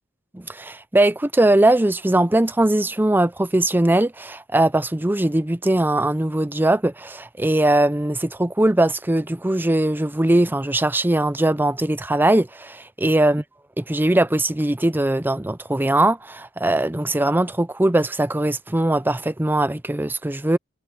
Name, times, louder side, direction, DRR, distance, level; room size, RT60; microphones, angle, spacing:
voice 1, 0.3-13.4 13.8-20.6, right 1 dB, 10° right, 0.5 m, -20 dB
head